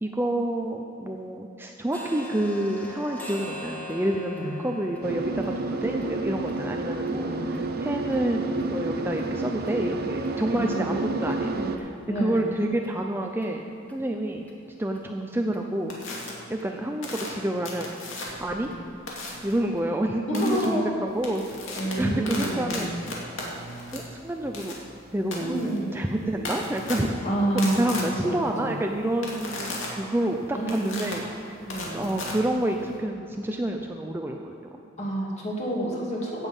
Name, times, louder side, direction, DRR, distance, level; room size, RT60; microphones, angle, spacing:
voice 1, 0.0-14.4 14.8-15.9 16.5-17.9 18.4-18.7 19.4-22.9 23.9-24.7 25.1-27.1 27.8-31.3 31.9-34.6, right 1 dB, 10° right, 2 dB, 0.5 m, -28 dB
sound 1, 1.9-9.7 10.2-10.3 10.7-10.9 11.3-11.4 11.8-11.9 12.4-12.5 12.8-12.9 13.4-13.5 13.9-14.0 14.5-14.6 14.9-15.0 15.5-15.6 16.0-16.1 16.6-16.7 17.1-17.2 17.6-17.7 18.1-18.2 18.6-18.7 19.2-19.3 19.8-19.9, left 1 dB, 10° left, 1.6 m, -43 dB
sound 2, 5.0-11.8, right 2 dB, 50° right, 0.7 m, -30 dB
voice 2, 7.1-7.5 10.5-11.8 12.1-12.5 18.5-18.7 20.3-21.0 21.7-22.8 25.4-25.9 27.2-28.8 30.5-31.1 31.7-32.0 35.0-36.5, right 1 dB, 35° left, -3 dB, 2.5 m, -29 dB
sound 3, 15.9-16.3 17.0-18.5 19.1-19.5 20.3-20.6 21.1-33.0, left 2 dB, 80° left, 2.4 m, -36 dB
16.0 x 7.3 x 5.5 m, 2.7 s
head